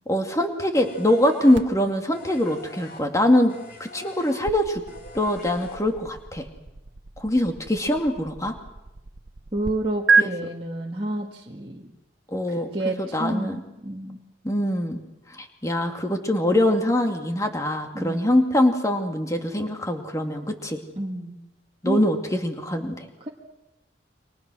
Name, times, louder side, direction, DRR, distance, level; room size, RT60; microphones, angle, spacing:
voice 1, 0.1-3.5 3.8-4.8 5.1-6.5 7.2-8.5 10.2-10.3 12.3-12.7 13.0-13.6 14.4-15.0 15.3-20.8 21.8-23.1, left 1 dB, 15° left, 4 dB, 2.4 m, -23 dB
sound 1, 0.7-6.2, left 2 dB, 50° left, 4.1 m, -45 dB
sound 2, 1.5-9.7 10.1-10.2, right 4 dB, 80° right, 0.9 m, -30 dB
voice 2, 9.5-11.9 12.5-14.2 17.9-18.4 21.0-21.4 21.9-22.0, right 1 dB, 30° right, -3 dB, 1.9 m, -30 dB
29.5 x 24.5 x 6.4 m, 0.97 s
head